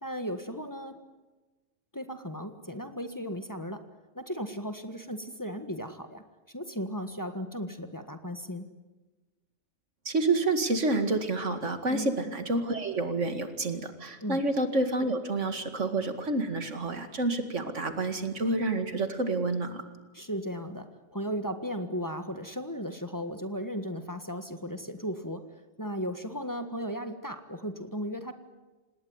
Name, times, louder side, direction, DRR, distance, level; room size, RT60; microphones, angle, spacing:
voice 1, 0.0-1.0 1.9-3.8 4.1-6.2 6.5-8.7 11.9-12.1 14.2-14.4 20.1-28.3, equal, 15° left, 7 dB, 1.6 m, -36 dB
voice 2, 10.1-19.8, right 2 dB, 75° right, 8 dB, 2.5 m, -29 dB
27.0 x 19.0 x 9.7 m, 1.2 s
omnidirectional pair, 1.3 m